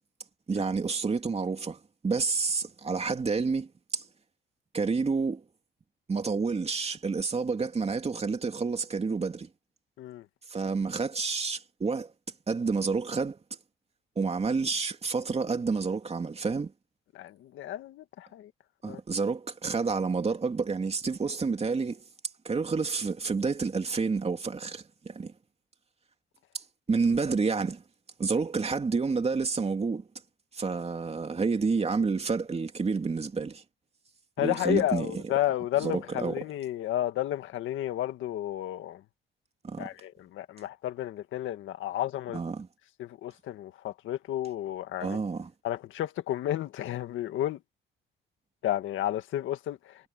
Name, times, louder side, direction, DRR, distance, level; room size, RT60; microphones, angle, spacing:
voice 1, 0.5-4.0 4.7-5.4 6.1-9.5 10.5-12.1 12.5-13.4 14.2-16.7 18.8-22.0 22.4-25.3 26.5-27.8 28.2-30.1 30.5-33.6 34.4-35.2 35.8-36.4 39.6-39.9 42.3-42.7 45.0-45.5, right 4 dB, 30° right, 2.8 m, -29 dB
voice 2, 17.1-18.5 18.9-19.0 34.4-39.0 39.8-42.4 43.0-45.2 45.6-47.6 48.6-50.1, left 13 dB, 85° left, 1.7 m, -32 dB
cardioid pair, 90°, 20 cm